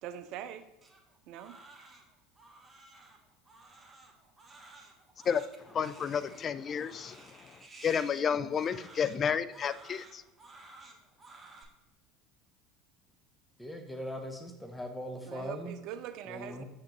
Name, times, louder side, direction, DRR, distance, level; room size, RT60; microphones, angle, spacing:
voice 1, 0.0-0.7 1.3-1.6 15.2-16.6, right 10 dB, 60° right, 0.5 m, -42 dB
Crying sobbing, 0.8-11.6, right 3 dB, 15° right, 1.2 m, -54 dB
voice 2, 5.2-10.2, left 7 dB, 40° left, 0.3 m, -32 dB
voice 3, 13.6-15.8 16.3-16.6, equal, 5° left, 0.8 m, -40 dB
6.5 x 5.8 x 3.0 m
hypercardioid pair, 80°, 0 cm